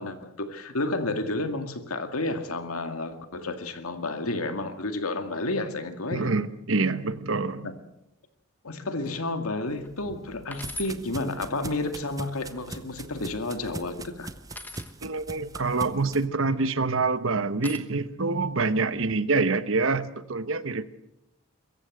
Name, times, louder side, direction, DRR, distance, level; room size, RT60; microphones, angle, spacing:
voice 1, 0.0-6.3 7.6-7.7 8.6-14.3, left 2 dB, 85° left, 8 dB, 2.1 m, -31 dB
voice 2, 6.1-7.7 15.0-20.8, right 3 dB, 65° right, 13 dB, 1.1 m, -26 dB
sound 1, 9.0-9.3 9.8-9.9 10.5-11.0 12.1-12.8 14.5-14.9 16.4-16.9 17.6-17.8, left 2 dB, 10° left, 1.1 m, -41 dB
sound 2, 9.7-16.3, right 2 dB, 15° right, 0.6 m, -42 dB
23.5 x 14.5 x 7.8 m, 0.88 s
head